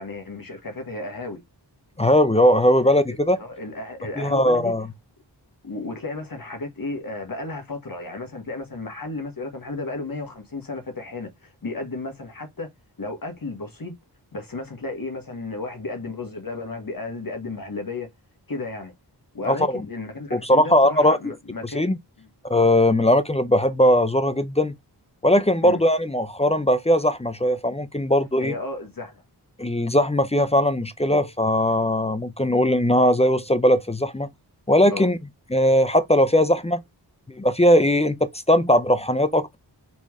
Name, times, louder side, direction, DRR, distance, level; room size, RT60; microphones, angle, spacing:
voice 1, 0.0-1.4 3.1-4.7 5.6-12.7 13.0-13.9 14.3-18.1 18.5-18.9 19.3-21.8 22.2-22.3 25.6-25.8 28.4-29.2 31.1-31.2 34.9-35.1, left 2 dB, 50° left, 1.3 m, -33 dB
voice 2, 2.0-3.4 4.2-4.9 19.4-19.8 20.3-21.2 21.7-22.0 22.5-24.7 25.2-28.5 29.6-34.3 34.7-35.2 35.5-36.8 37.3-38.2 38.5-39.6, left 1 dB, 15° left, 0.5 m, -19 dB
4.3 x 3.0 x 3.5 m
wide cardioid pair, 55°, 42 cm